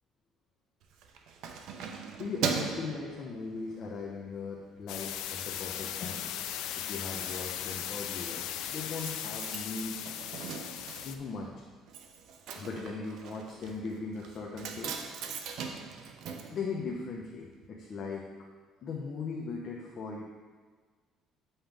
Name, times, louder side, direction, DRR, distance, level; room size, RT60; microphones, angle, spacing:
Keys jangling, 0.8-3.9 4.4-4.6 4.9-5.6 5.9-6.0 6.2-6.3 6.5-17.4 17.6-17.7, right 6 dB, 70° right, 0.7 m, -40 dB
voice 1, 2.2-6.3 6.8-8.4 8.7-10.0 10.7-11.5 12.5-15.0 16.5-18.3 18.8-20.2, left 4 dB, 45° left, -1 dB, 0.9 m, -39 dB
sound 1, 4.9-11.2, left 10 dB, 90° left, 0.4 m, -38 dB
8.5 x 5.7 x 3.5 m, 1.5 s
cardioid pair, 140°, 0 cm